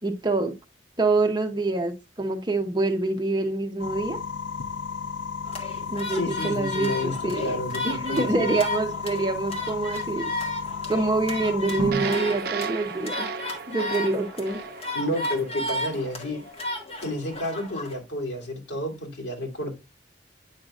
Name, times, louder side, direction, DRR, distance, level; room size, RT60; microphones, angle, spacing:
voice 1, 0.0-0.5 1.0-4.2 5.9-7.5 7.8-10.3 10.9-13.3 13.7-14.6, right 3 dB, 25° right, 0.8 m, -26 dB
sound 1, 3.8-11.9, left 5 dB, 90° left, 0.6 m, -34 dB
sound 2, 5.5-18.0, left 1 dB, 35° left, 1.3 m, -34 dB
voice 2, 6.1-8.5 14.9-16.4 17.0-19.7, left 1 dB, 70° left, 2.6 m, -31 dB
sound 3, 11.8-16.1, right 3 dB, 55° right, 0.5 m, -33 dB
8.9 x 5.6 x 2.4 m
head